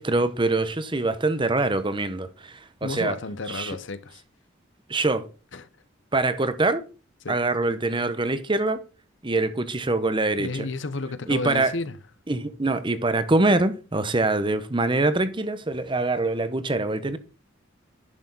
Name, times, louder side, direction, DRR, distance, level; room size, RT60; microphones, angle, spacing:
voice 1, 0.0-3.1 3.5-3.7 4.9-5.3 6.1-6.8 7.3-8.8 9.2-10.7 11.3-11.7 12.3-17.2, right 2 dB, 25° right, 0.9 m, -24 dB
voice 2, 2.8-4.2 5.5-5.7 7.2-7.4 10.4-12.0, left 3 dB, 65° left, 0.9 m, -32 dB
11.0 x 6.3 x 3.9 m
head